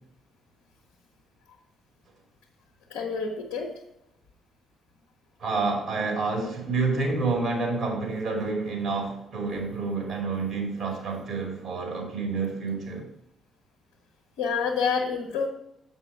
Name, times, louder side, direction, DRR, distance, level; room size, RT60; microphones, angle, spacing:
voice 1, 2.9-3.7 14.4-15.5, left 5 dB, 70° left, -1 dB, 1.0 m, -28 dB
voice 2, 5.4-13.1, right 3 dB, 55° right, 1 dB, 2.5 m, -28 dB
7.7 x 5.4 x 4.5 m, 0.80 s
figure-of-eight pair, 40°, 0 cm